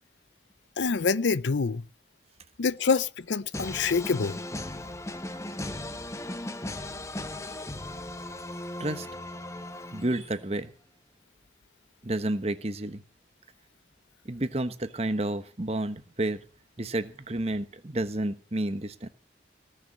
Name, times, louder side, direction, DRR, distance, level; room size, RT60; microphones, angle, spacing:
voice 1, 0.8-1.9 2.6-4.4, left 4 dB, 80° left, 0.6 m, -26 dB
sound 1, 3.5-10.5, left 1 dB, 15° left, 0.8 m, -37 dB
voice 2, 9.9-10.7 12.0-13.0 14.2-16.4 16.8-19.1, right 1 dB, 35° right, 1.2 m, -30 dB
19.0 x 6.8 x 7.3 m
head